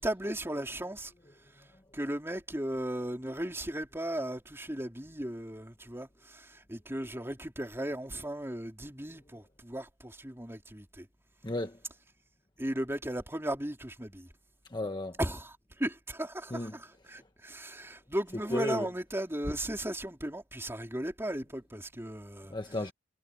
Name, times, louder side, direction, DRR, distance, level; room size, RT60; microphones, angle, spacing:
voice 1, 0.0-1.1 1.5-1.6 1.9-11.1 12.6-14.3 15.2-22.5, right 1 dB, 15° right, 3.4 m, -36 dB
voice 2, 11.4-11.8 14.7-15.2 16.5-16.7 18.5-18.9 22.5-22.9, left 1 dB, 20° left, 1.1 m, -33 dB
head